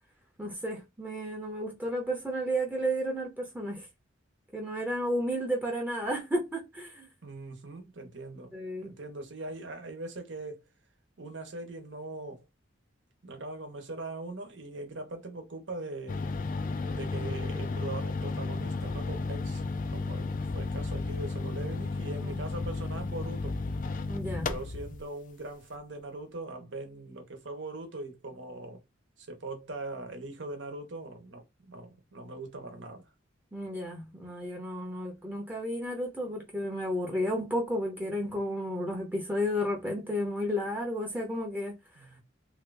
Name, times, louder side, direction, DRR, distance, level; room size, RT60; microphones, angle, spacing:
voice 1, 0.4-3.9 4.5-7.1 8.5-8.9 22.2-22.4 24.1-24.5 33.5-42.1, equal, 10° right, 0.8 m, -32 dB
voice 2, 7.2-8.5 8.8-10.6 11.2-12.4 13.2-16.2 16.9-19.6 19.9-23.6 24.4-28.8 29.2-33.0 38.3-38.4 41.9-42.2, right 2 dB, 70° right, 1.0 m, -41 dB
sound 1, 16.1-25.0, left 3 dB, 40° left, 0.4 m, -33 dB
2.8 x 2.5 x 3.3 m
head